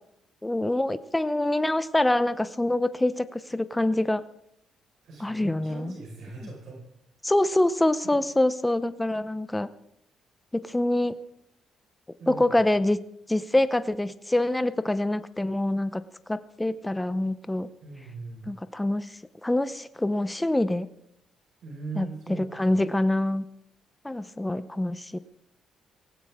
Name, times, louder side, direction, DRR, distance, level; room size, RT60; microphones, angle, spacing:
voice 1, 0.4-4.2 5.2-5.9 7.2-9.7 10.5-11.2 12.3-13.0 13.3-16.0 16.3-17.7 18.5-19.1 19.4-20.9 22.0-22.1 22.4-23.4 24.0-25.2, left 1 dB, 10° left, 13 dB, 0.7 m, -25 dB
voice 2, 5.0-6.8 8.0-8.2 12.2-12.5 17.8-18.5 21.6-22.8, right 4 dB, 70° right, -2 dB, 4.8 m, -40 dB
17.5 x 16.0 x 3.6 m, 0.74 s
cardioid pair, 90°, 0 cm